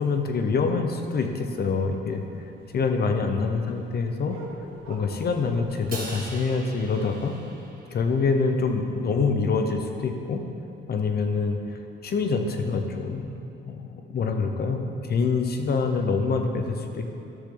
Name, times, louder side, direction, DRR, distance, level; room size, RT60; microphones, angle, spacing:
voice 1, 0.0-2.2 2.7-4.4 4.9-7.4 7.9-10.4 10.9-11.6 12.0-13.4 13.7-17.1, left 4 dB, 50° left, 5 dB, 1.0 m, -25 dB
sound 1, 2.1-7.7, right 3 dB, 85° right, 1.5 m, -47 dB
Crash cymbal, 5.9-8.3, right 3 dB, 45° right, 1.6 m, -40 dB
12.0 x 6.5 x 4.0 m, 2.7 s
cardioid pair, 90°, 20 cm